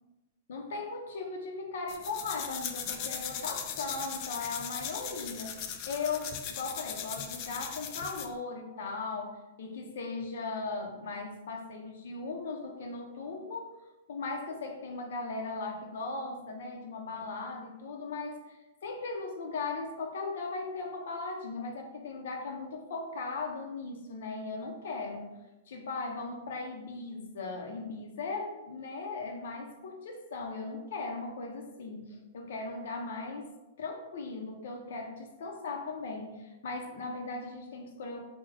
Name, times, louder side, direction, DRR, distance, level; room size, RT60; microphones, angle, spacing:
voice 1, 0.5-5.6 5.9-13.8 14.1-38.2, left 3 dB, 70° left, 2 dB, 0.7 m, -38 dB
sound 1, 1.9-8.4, left 8 dB, 40° left, 0.3 m, -39 dB
3.4 x 2.2 x 3.3 m, 1.0 s
hypercardioid pair, 155°, 0 cm